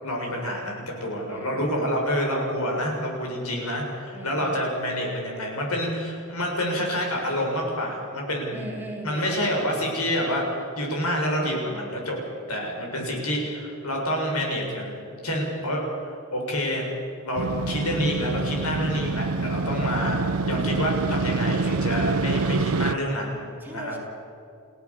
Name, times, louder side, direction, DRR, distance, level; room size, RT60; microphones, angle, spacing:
voice 1, 0.0-8.6 9.0-12.2 12.5-16.9 17.2-20.2 20.5-23.5 23.7-24.0, equal, 85° left, 0 dB, 6.9 m, -28 dB
voice 2, 1.3-1.7 4.1-4.6 8.5-9.8 12.8-13.4 23.6-24.0, right 1 dB, 10° right, -1 dB, 3.8 m, -40 dB
Motorcycle, 17.4-23.0, right 3 dB, 75° right, 0.7 m, -26 dB
29.5 x 17.0 x 7.3 m, 2.7 s
head